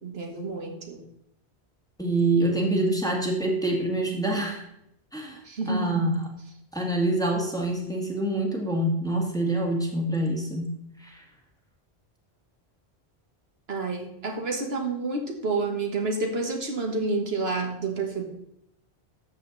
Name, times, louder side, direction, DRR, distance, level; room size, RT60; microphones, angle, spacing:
voice 1, 0.0-1.0 5.4-6.1 13.7-18.2, right 3 dB, 70° right, 2 dB, 1.8 m, -29 dB
voice 2, 2.0-4.6 5.1-5.4 5.7-6.1 6.7-10.7 11.0-11.2, right 1 dB, 5° left, 0 dB, 2.0 m, -26 dB
12.5 x 7.6 x 4.0 m, 0.77 s
omnidirectional pair, 1.1 m